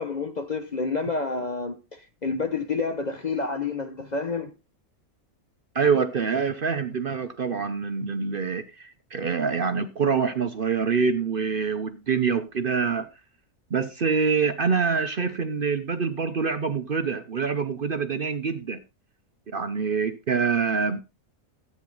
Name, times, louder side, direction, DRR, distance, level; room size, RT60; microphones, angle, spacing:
voice 1, 0.0-4.5, left 4 dB, 35° left, 0.8 m, -29 dB
voice 2, 5.7-13.1 13.7-18.8 19.5-21.0, right 5 dB, 45° right, 0.8 m, -25 dB
13.5 x 8.8 x 3.9 m
omnidirectional pair, 1.5 m